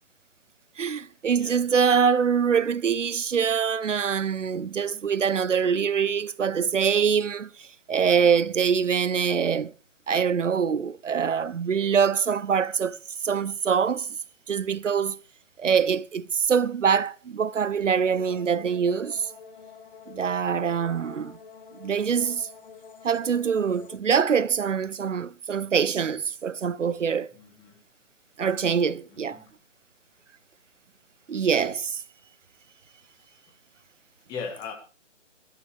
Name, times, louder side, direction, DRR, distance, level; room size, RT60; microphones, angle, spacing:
voice 1, 0.8-9.7 10.1-13.0 13.2-14.2 14.5-15.2 15.6-19.3 20.1-21.4 21.8-22.5 23.0-27.3 28.4-29.4 31.3-32.0, right 7 dB, 75° right, 0.7 m, -24 dB
voice 2, 1.3-2.2 27.3-27.8 29.1-29.5 34.3-34.7, left 5 dB, 10° left, 1.3 m, -39 dB
sound 1, 18.0-24.0, left 6 dB, 45° left, 1.2 m, -47 dB
18.5 x 12.5 x 3.3 m
figure-of-eight pair, 145°, 37 cm